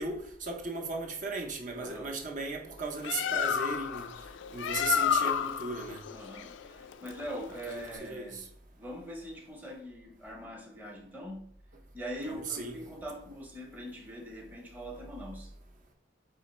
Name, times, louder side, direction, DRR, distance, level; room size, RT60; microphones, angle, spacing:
voice 1, 0.0-4.1 4.5-6.0 7.7-8.4 12.3-12.7, right 3 dB, 45° right, 0.7 m, -36 dB
voice 2, 1.8-2.2 6.1-8.5 8.8-11.5 11.9-15.5, equal, 10° right, 0.8 m, -42 dB
Bird, 2.8-8.0, left 8 dB, 65° left, 0.3 m, -31 dB
4.1 x 2.9 x 4.1 m
head